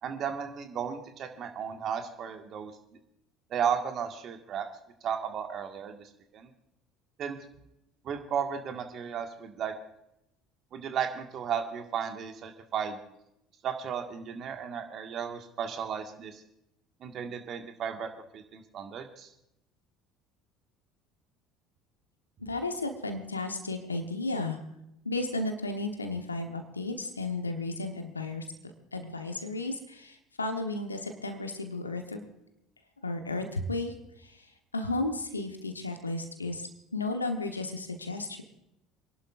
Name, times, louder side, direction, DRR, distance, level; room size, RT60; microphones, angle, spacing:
voice 1, 0.0-2.7 3.5-4.7 5.0-6.5 7.2-7.4 8.0-9.7 10.7-13.0 13.6-16.4 17.0-19.3, right 7 dB, 45° right, 5 dB, 1.7 m, -34 dB
voice 2, 22.4-24.6 25.0-28.5 28.9-32.2 33.0-34.5 34.7-38.4, left 2 dB, 90° left, 6 dB, 1.1 m, -34 dB
27.5 x 11.5 x 2.5 m, 0.82 s
figure-of-eight pair, 60°, 0 cm